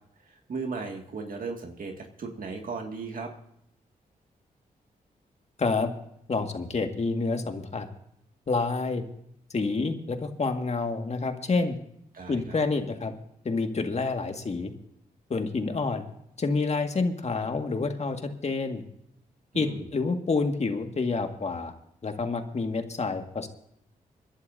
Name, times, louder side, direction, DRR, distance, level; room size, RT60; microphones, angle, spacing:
voice 1, 0.2-3.3 12.1-12.6 19.5-19.9, right 4 dB, 65° right, 2 dB, 2.1 m, -36 dB
voice 2, 5.6-5.9 6.3-7.9 8.5-9.0 9.5-11.8 12.3-13.1 13.5-14.7 15.3-16.0 16.4-18.8 19.5-21.7 22.0-23.5, left 3 dB, 45° left, 5 dB, 1.9 m, -28 dB
26.5 x 11.5 x 2.7 m, 0.74 s
cardioid pair, 60°, 16 cm